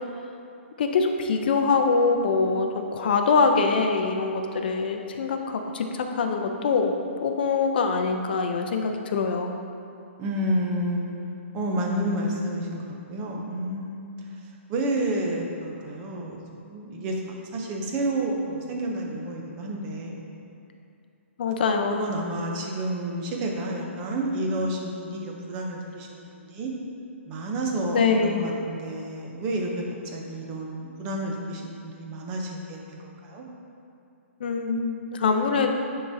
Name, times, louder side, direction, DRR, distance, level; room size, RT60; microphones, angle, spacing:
voice 1, 0.8-6.9 7.2-9.5 21.4-22.0 27.8-28.5 34.4-35.7, left 4 dB, 45° left, 4 dB, 0.5 m, -24 dB
voice 2, 10.2-11.1 11.5-14.1 14.7-17.2 17.5-20.3 21.9-26.7 27.3-29.7 30.0-33.5, right 1 dB, 20° right, 0 dB, 0.5 m, -30 dB
9.9 x 3.8 x 2.6 m, 2.6 s
hypercardioid pair, 170°, 7 cm